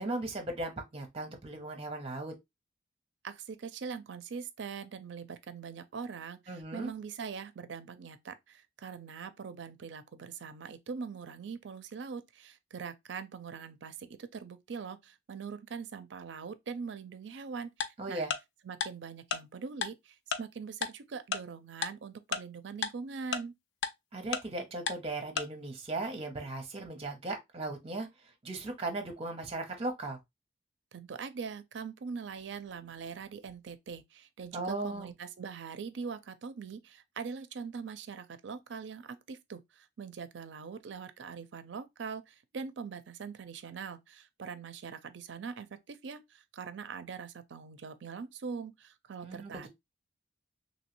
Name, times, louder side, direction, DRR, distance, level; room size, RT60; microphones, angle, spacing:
voice 1, 0.0-2.3 6.5-6.9 18.0-18.3 24.1-30.2 34.5-35.1 49.2-49.7, right 2 dB, 30° right, 0.8 m, -37 dB
voice 2, 3.2-18.2 18.6-23.5 30.9-49.7, right 5 dB, 70° right, 0.4 m, -42 dB
Tick-tock, 17.8-17.9 18.3-18.4 18.8-18.9 19.3-19.4 19.8-19.9 20.3-20.4 20.8-20.9 21.3-21.4 21.8-21.9 22.3-22.4 22.8-22.9 23.3-23.4 23.8-23.9 24.3-24.4 24.9-25.0 25.4-25.5, left 6 dB, 80° left, 0.4 m, -31 dB
3.1 x 2.7 x 3.0 m
head